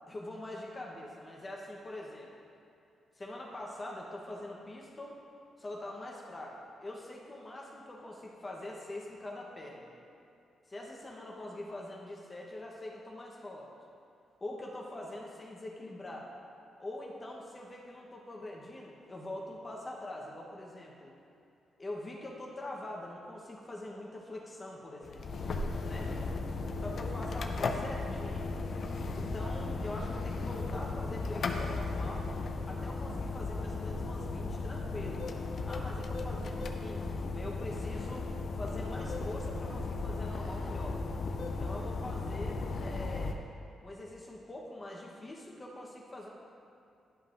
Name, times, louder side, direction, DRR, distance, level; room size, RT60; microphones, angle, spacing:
voice 1, 0.1-2.3 3.2-5.2 5.6-9.9 10.7-13.7 14.4-16.3 16.8-21.1 21.8-25.2 25.8-26.1 26.8-28.5 29.1-32.3 32.7-35.2 35.7-41.0 41.4-43.4 43.8-46.3, left 1 dB, 25° left, -2 dB, 0.9 m, -44 dB
sound 1, 25.0-43.3, left 3 dB, 55° left, 0.5 m, -36 dB
11.0 x 5.4 x 2.5 m, 2.6 s
cardioid pair, 115°, 0 cm